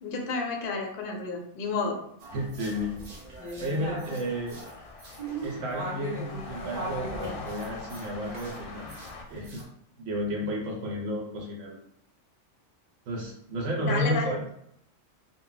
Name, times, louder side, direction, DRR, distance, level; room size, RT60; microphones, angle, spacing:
voice 1, 0.0-2.0 13.8-14.4, left 4 dB, 60° left, 1 dB, 0.6 m, -31 dB
sound 1, 2.2-9.6, right 1 dB, 45° right, 0.7 m, -39 dB
voice 2, 2.3-3.0 3.6-4.6 5.4-9.0 9.3-9.6 10.0-11.8 13.1-14.4, equal, 80° right, -2 dB, 0.9 m, -32 dB
sound 2, 4.1-9.2, left 3 dB, 90° left, 0.9 m, -43 dB
2.1 x 2.0 x 3.8 m, 0.71 s
omnidirectional pair, 1.2 m